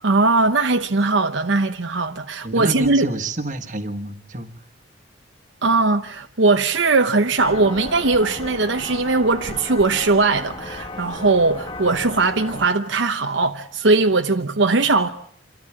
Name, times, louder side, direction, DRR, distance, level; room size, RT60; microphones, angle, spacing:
voice 1, 0.0-3.1 5.6-15.1, right 3 dB, 70° right, 0.9 m, -19 dB
voice 2, 2.4-4.5, right 2 dB, 40° right, 1.6 m, -28 dB
sound 1, 7.4-12.7, left 2 dB, 25° left, 1.1 m, -35 dB
27.5 x 13.5 x 8.8 m
head